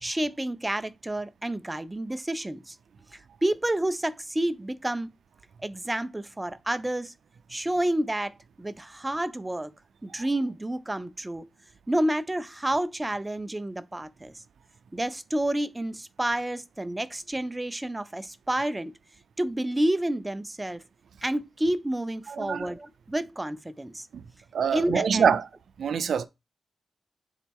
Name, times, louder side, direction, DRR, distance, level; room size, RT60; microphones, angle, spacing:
voice 1, 0.0-2.8 3.1-5.1 5.6-7.1 7.5-9.7 10.0-11.5 11.9-14.3 14.9-18.9 19.4-20.8 21.2-24.1 24.7-25.3, right 1 dB, 10° right, 0.4 m, -29 dB
voice 2, 22.3-22.7 24.1-24.2 24.5-25.4 25.8-26.3, right 7 dB, 75° right, 0.5 m, -25 dB
7.1 x 4.1 x 3.6 m
wide cardioid pair, 180°, 0 cm